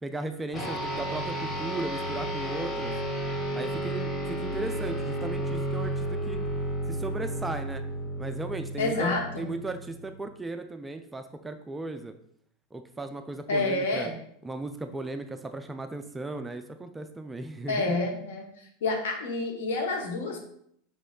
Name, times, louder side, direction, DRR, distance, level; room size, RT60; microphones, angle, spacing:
voice 1, 0.0-2.9 3.5-6.4 6.9-7.8 8.2-12.1 12.7-14.1 14.4-18.0, right 2 dB, 10° right, 7 dB, 0.3 m, -36 dB
sound 1, 0.5-10.2, right 1 dB, 25° left, 1.7 m, -32 dB
voice 2, 8.8-9.5 13.5-14.2 17.7-18.5 18.8-20.4, left 3 dB, 60° left, 1 dB, 1.0 m, -28 dB
5.3 x 4.1 x 2.3 m, 0.68 s
figure-of-eight pair, 80°, 0 cm